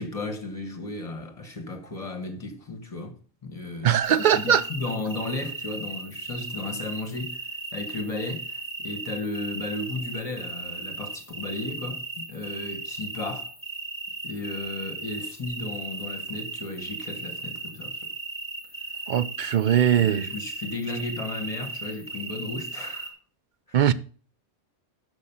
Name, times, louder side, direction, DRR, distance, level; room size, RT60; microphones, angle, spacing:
voice 1, 0.0-7.5 7.7-13.5 14.2-18.1 19.9-23.1 23.7-23.8, left 2 dB, 30° left, 1.5 m, -34 dB
voice 2, 3.8-4.6 19.1-20.3 23.7-23.9, right 9 dB, 55° right, 0.6 m, -20 dB
sound 1, 4.0-23.1, right 3 dB, 10° right, 1.8 m, -37 dB
6.6 x 6.3 x 7.0 m
omnidirectional pair, 1.1 m